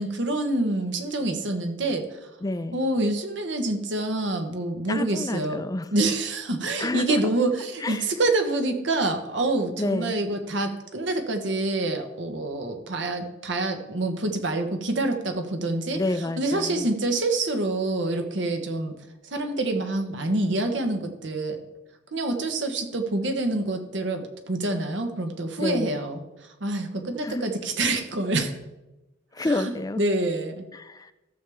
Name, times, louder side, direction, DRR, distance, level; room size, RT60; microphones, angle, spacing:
voice 1, 0.0-2.2 2.7-5.6 5.9-16.0 16.4-18.9 19.2-21.6 22.1-26.2 26.6-28.5 29.4-29.7 30.0-30.7, right 2 dB, 75° right, 5 dB, 1.3 m, -26 dB
voice 2, 2.4-2.8 4.9-5.9 6.8-7.3 7.8-8.1 9.8-10.2 15.9-16.9 25.6-25.9 27.2-27.4 29.3-30.0 30.7-31.1, left 2 dB, 20° left, 12 dB, 0.4 m, -29 dB
14.0 x 6.9 x 3.6 m, 1.0 s
head